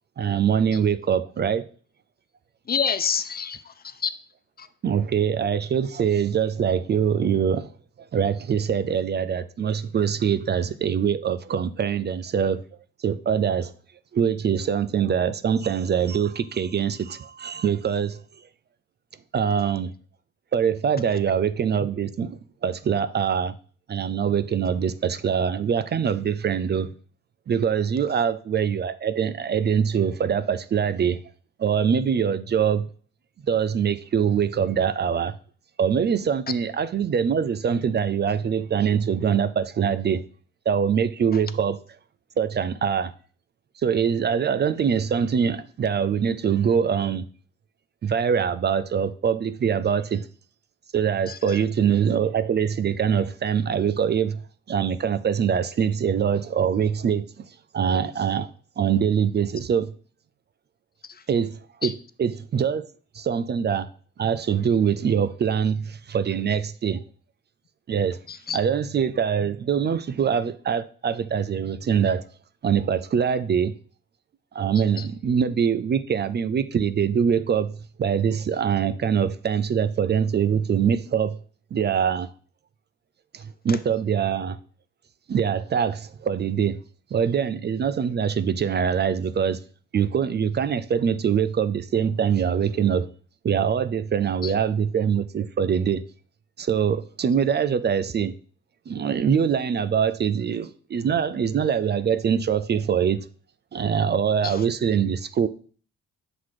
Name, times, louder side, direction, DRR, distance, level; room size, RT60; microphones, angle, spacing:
voice 1, 0.2-1.6 4.8-7.7 8.1-12.6 13.0-13.7 14.1-18.2 19.3-19.9 20.5-23.5 23.9-26.9 27.5-31.2 31.6-32.9 33.5-35.3 35.8-40.2 40.7-41.8 42.4-43.1 43.8-47.2 48.0-50.3 50.9-54.4 54.7-57.4 57.7-58.5 58.8-59.9 61.3-62.8 63.1-63.9 64.2-67.0 67.9-68.2 68.5-72.3 72.6-73.7 74.5-77.7 78.0-81.4 81.7-82.3 83.3-84.6 85.3-86.8 87.1-89.6 89.9-93.1 93.4-96.0 96.6-98.3 98.9-103.2 103.7-105.5, right 7 dB, 35° right, 0.4 m, -23 dB
voice 2, 2.7-3.7 4.0-4.1 4.6-4.7 51.3-51.4 61.8-61.9 68.3-68.6 94.4-94.5 104.4-104.6, left 6 dB, 30° left, 0.4 m, -27 dB
5.9 x 3.9 x 4.7 m
cardioid pair, 90°, 30 cm